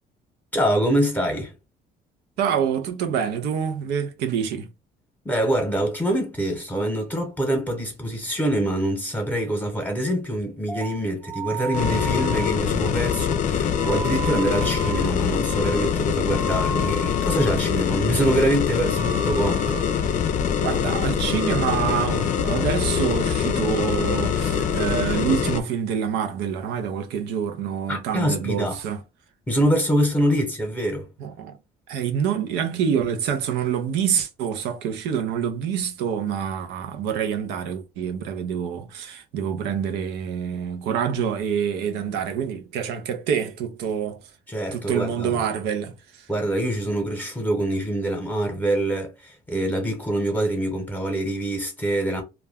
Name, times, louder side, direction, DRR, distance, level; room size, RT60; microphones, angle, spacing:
voice 1, 0.5-1.5 5.2-19.8 27.9-28.8 29.5-31.1 44.5-45.4 46.3-52.2, right 1 dB, 10° left, 0.9 m, -25 dB
voice 2, 2.4-4.7 20.6-29.0 31.2-31.6 31.9-44.2 44.7-46.3, right 8 dB, 90° right, 0.6 m, -26 dB
sound 1, 10.7-17.7 17.9-18.4 18.7-20.2 20.5-20.9 21.2-22.7 23.0-23.4 23.7-25.1, right 2 dB, 15° right, 0.7 m, -35 dB
sound 2, 11.7-25.6, left 7 dB, 50° left, 0.5 m, -24 dB
2.3 x 2.1 x 3.5 m
cardioid pair, 110°, 17 cm